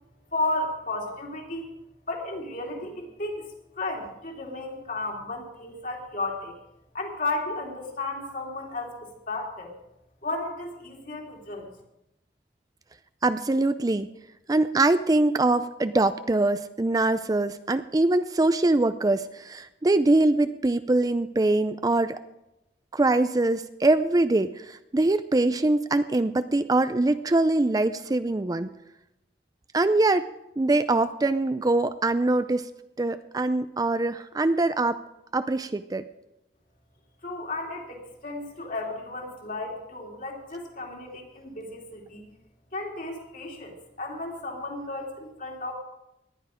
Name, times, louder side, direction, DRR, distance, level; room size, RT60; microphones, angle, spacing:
voice 1, 0.3-1.7 2.1-3.5 3.8-6.5 6.9-9.7 10.2-11.7 37.2-42.2 42.7-45.7, left 2 dB, 50° left, 0 dB, 3.0 m, -33 dB
voice 2, 13.2-14.1 14.5-22.2 22.9-28.7 29.7-30.3 30.6-32.7 33.0-35.0 35.3-36.0, right 2 dB, 20° right, 12 dB, 0.4 m, -23 dB
19.0 x 11.0 x 5.0 m, 0.89 s
head